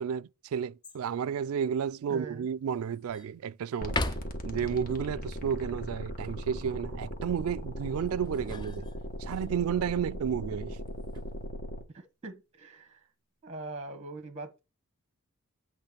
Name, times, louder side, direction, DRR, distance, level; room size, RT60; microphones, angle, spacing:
voice 1, 0.0-4.0 4.4-8.9 9.2-10.8 11.1-11.2, right 7 dB, 75° right, 0.3 m, -32 dB
sound 1, 0.8-1.3 1.9-2.0 2.5-3.3 3.8-4.6 8.1-9.4 10.8-11.3, left 2 dB, 20° left, 0.4 m, -38 dB
voice 2, 2.1-2.5 11.9-13.0 13.4-14.6, right 2 dB, 30° right, 1.0 m, -42 dB
sound 2, 3.8-11.8, equal, 40° left, 1.2 m, -38 dB
8.5 x 3.1 x 5.7 m
head